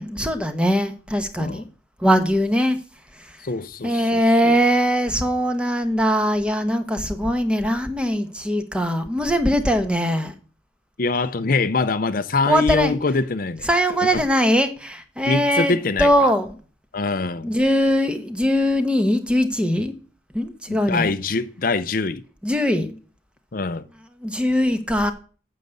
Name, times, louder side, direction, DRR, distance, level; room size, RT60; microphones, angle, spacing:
voice 1, 0.0-1.7 2.0-2.8 3.1-3.4 3.8-10.3 12.4-13.0 13.6-16.5 17.4-19.9 20.3-21.1 22.4-23.0 24.2-25.1, equal, 5° right, 1.1 m, -21 dB
voice 2, 3.4-3.9 4.5-4.6 11.0-13.7 15.3-16.3 16.9-17.5 20.7-22.2 23.5-23.8, left 3 dB, 50° left, 0.6 m, -23 dB
9.3 x 6.6 x 8.3 m
head